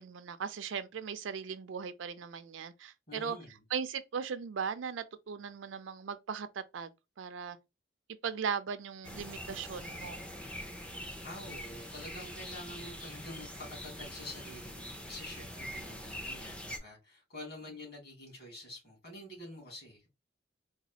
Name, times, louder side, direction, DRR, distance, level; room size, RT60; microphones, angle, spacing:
voice 1, 0.0-3.4 3.7-6.9 7.2-7.6 8.2-10.2, right 6 dB, 80° right, 0.4 m, -38 dB
voice 2, 3.1-3.6 11.2-20.1, left 1 dB, 50° left, 2.3 m, -47 dB
sound 1, 9.0-16.8, equal, 5° left, 0.4 m, -44 dB
4.0 x 2.3 x 2.8 m
head